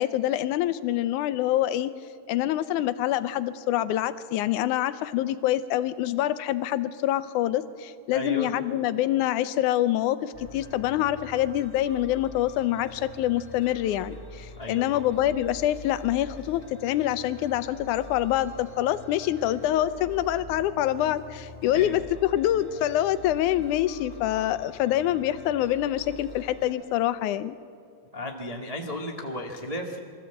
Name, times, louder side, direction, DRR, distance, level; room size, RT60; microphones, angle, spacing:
voice 1, 0.0-1.9 2.3-27.6, left 13 dB, 80° left, 14 dB, 2.1 m, -26 dB
voice 2, 8.1-8.5 14.6-14.8 21.6-22.0 28.1-30.0, left 1 dB, 55° right, 0 dB, 0.4 m, -34 dB
sound 1, 10.3-26.7, left 1 dB, 10° left, 4.0 m, -45 dB
23.5 x 14.5 x 7.8 m, 2.4 s
omnidirectional pair, 3.6 m